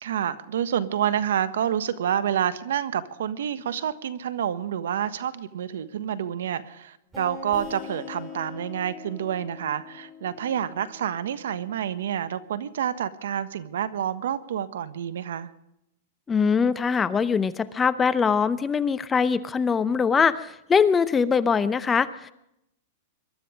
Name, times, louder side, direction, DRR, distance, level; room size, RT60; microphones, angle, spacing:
voice 1, 0.0-15.5, right 9 dB, 85° right, 14 dB, 1.3 m, -28 dB
sound 1, 7.1-12.5, left 5 dB, 10° right, 5.7 m, -42 dB
voice 2, 16.3-22.3, left 6 dB, 15° left, 14 dB, 0.7 m, -22 dB
22.5 x 12.5 x 5.1 m, 0.80 s
supercardioid pair, 155°, 0 cm